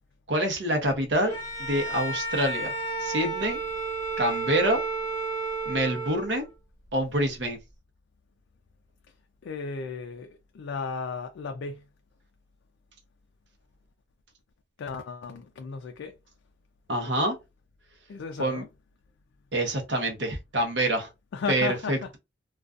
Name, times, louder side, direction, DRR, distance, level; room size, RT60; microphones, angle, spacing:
voice 1, 0.3-1.3 1.6-2.7 3.0-3.6 4.2-4.8 5.7-6.4 6.9-7.6 16.9-17.4 18.4-18.6 19.5-21.1 21.5-22.2, right 1 dB, 70° right, 0.8 m, -26 dB
Bowed string instrument, 1.2-6.5, right 3 dB, 15° left, 0.7 m, -32 dB
voice 2, 9.4-11.9 14.8-16.2 18.1-18.7 21.3-22.1, left 5 dB, 75° left, 0.3 m, -35 dB
2.5 x 2.3 x 2.4 m
head